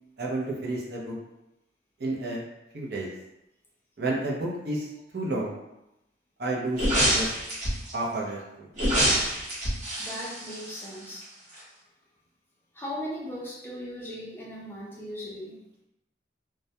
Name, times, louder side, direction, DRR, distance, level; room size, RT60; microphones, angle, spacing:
voice 1, 0.2-1.1 2.0-2.4 2.7-3.1 4.0-4.9 5.1-5.6 6.4-7.3 7.9-8.7, right 2 dB, 60° right, -3 dB, 0.5 m, -31 dB
sound 1, 6.7-7.9 8.7-11.2 11.5-11.6, equal, 45° right, 0.9 m, -26 dB
voice 2, 10.0-11.2 12.7-15.6, equal, 15° left, -6 dB, 0.5 m, -38 dB
2.2 x 2.1 x 2.7 m, 0.89 s
head